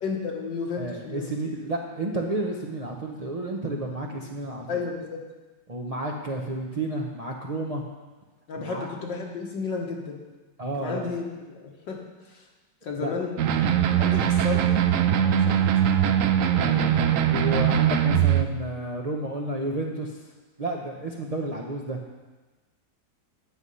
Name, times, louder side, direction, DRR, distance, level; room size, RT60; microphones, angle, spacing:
voice 1, 0.0-1.3 4.7-5.2 8.5-10.2 10.8-12.0 12.3-12.5 12.8-13.3 14.0-14.7 15.2-16.1, left 5 dB, 75° left, 1 dB, 2.1 m, -33 dB
voice 2, 0.8-4.8 5.7-7.8 8.6-8.9 10.6-11.1 13.0-13.1 16.6-20.2 20.6-22.0, right 2 dB, 35° right, -1 dB, 0.6 m, -31 dB
sound 1, 13.4-18.4, right 10 dB, 80° right, 0.7 m, -21 dB
10.5 x 7.9 x 5.5 m, 1.2 s
omnidirectional pair, 2.0 m